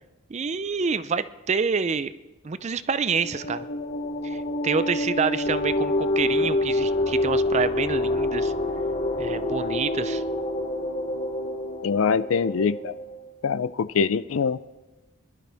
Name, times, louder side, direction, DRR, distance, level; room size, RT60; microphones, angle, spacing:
voice 1, 0.3-2.1 2.4-3.7 4.2-8.5 9.2-10.2, right 5 dB, 30° right, 14 dB, 0.4 m, -27 dB
sound 1, 3.0-13.2, left 1 dB, 35° left, 1.0 m, -27 dB
voice 2, 11.8-12.9 13.4-14.6, left 5 dB, 70° left, 17 dB, 0.4 m, -24 dB
21.5 x 12.0 x 3.4 m, 1.1 s
head